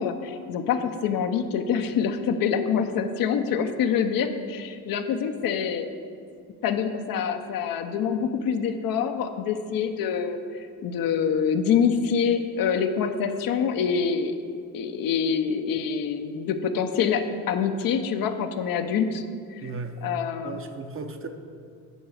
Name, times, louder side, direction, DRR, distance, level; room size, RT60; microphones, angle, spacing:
voice 1, 0.0-5.9 6.6-14.3 14.7-19.2 19.5-19.6 20.0-20.6, left 7 dB, 65° left, 7 dB, 0.8 m, -26 dB
voice 2, 19.6-20.0 20.4-21.3, right 4 dB, 35° right, 6 dB, 0.9 m, -35 dB
10.0 x 4.7 x 7.1 m, 2.3 s
supercardioid pair, 80°, 37 cm